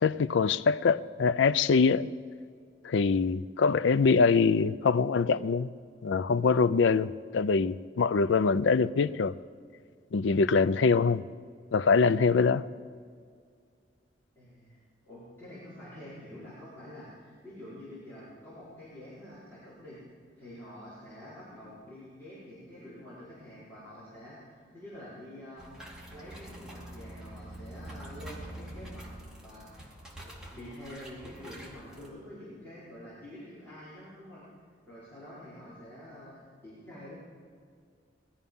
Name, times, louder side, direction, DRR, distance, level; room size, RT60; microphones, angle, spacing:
voice 1, 0.0-2.1 2.8-5.7 6.0-9.3 10.1-11.2 11.7-12.6, left 5 dB, 70° left, 0.4 m, -24 dB
voice 2, 14.3-14.8 15.0-20.0 20.4-25.7 26.1-29.1 29.4-29.7 30.2-34.4 34.9-37.1, left 1 dB, 10° left, 4.8 m, -47 dB
sound 1, 25.6-32.1, right 1 dB, 5° right, 2.6 m, -45 dB
20.0 x 13.0 x 5.5 m
head